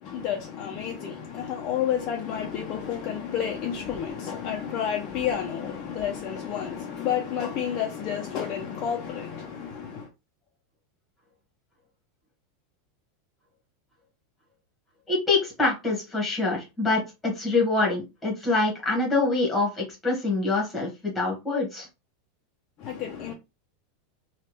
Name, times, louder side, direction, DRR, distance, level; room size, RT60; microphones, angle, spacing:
voice 1, 0.0-10.1 22.8-23.3, left 8 dB, 30° left, 0.5 m, -30 dB
voice 2, 15.1-21.9, left 3 dB, 5° left, 1.3 m, -25 dB
3.3 x 2.3 x 3.0 m
supercardioid pair, 175°, 0 cm